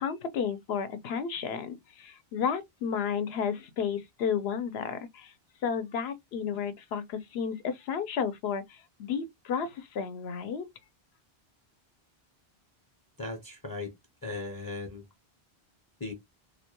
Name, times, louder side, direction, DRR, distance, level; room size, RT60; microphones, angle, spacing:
voice 1, 0.0-5.3 5.6-10.7, left 7 dB, 80° left, 0.8 m, -32 dB
voice 2, 13.2-13.9 14.2-15.0 16.0-16.1, left 3 dB, 25° left, 0.6 m, -37 dB
2.3 x 2.2 x 2.8 m
omnidirectional pair, 1.0 m